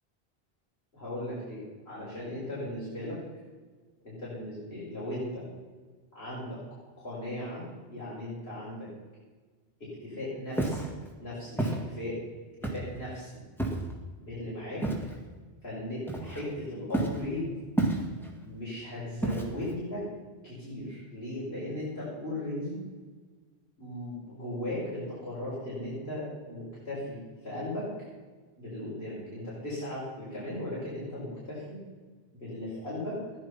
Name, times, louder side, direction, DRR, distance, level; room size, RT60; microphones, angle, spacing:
voice 1, 0.9-3.2 4.0-5.4 6.1-6.6 7.0-8.9 9.8-10.9 11.2-12.2 12.6-13.3 14.1-14.9 15.6-17.9 18.4-20.0 20.4-22.8 23.8-27.9 28.6-31.8 32.3-33.2, left 1 dB, 70° left, -9 dB, 5.6 m, -37 dB
Walk footsteps, 10.5-10.9 11.6-11.8 12.6-13.0 13.6-13.9 14.8-15.1 16.1-16.5 16.9-17.2 17.8-18.3 19.2-19.7, right 2 dB, ahead, 2.0 m, -29 dB
15.0 x 11.0 x 5.7 m, 1.4 s
omnidirectional pair, 1.0 m